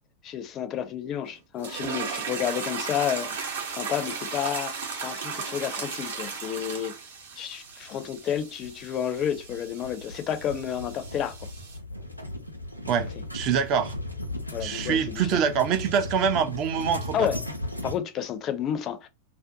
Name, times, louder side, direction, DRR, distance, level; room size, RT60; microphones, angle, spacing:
voice 1, 0.2-4.7 5.0-7.0 7.4-11.3 14.5-15.4 17.1-17.4 17.8-19.1, left 9 dB, 30° left, 0.4 m, -30 dB
sound 1, 1.6-11.8, right 5 dB, 60° right, 0.8 m, -36 dB
sound 2, 8.3-18.0, left 1 dB, 90° left, 0.5 m, -37 dB
voice 2, 13.3-13.9 14.6-17.2, right 7 dB, 40° right, 0.4 m, -25 dB
2.4 x 2.1 x 2.6 m
figure-of-eight pair, 90°, 0 cm